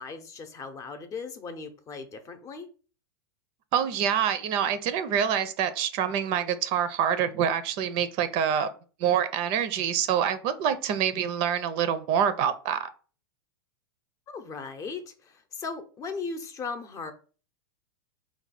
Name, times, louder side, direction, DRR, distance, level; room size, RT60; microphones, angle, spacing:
voice 1, 0.0-2.7 14.3-17.1, left 4 dB, 25° left, 0.7 m, -37 dB
voice 2, 3.7-8.7 9.0-12.9, right 8 dB, 45° right, 0.5 m, -26 dB
4.6 x 2.3 x 4.1 m
hypercardioid pair, 125°, 12 cm